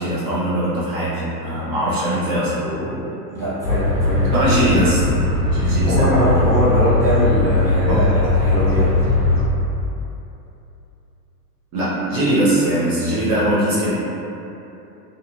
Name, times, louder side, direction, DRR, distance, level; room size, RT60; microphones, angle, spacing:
voice 1, 0.0-2.5 4.3-6.2 7.9-8.0 11.7-13.9, right 1 dB, 40° right, -9 dB, 0.8 m, -21 dB
voice 2, 2.6-4.3 5.6-8.9, equal, 5° left, -13 dB, 0.9 m, -22 dB
sound 1, 3.6-9.4, left 2 dB, 85° right, 0.9 m, -19 dB
2.6 x 2.3 x 2.5 m, 2.9 s
hypercardioid pair, 95°, 49 cm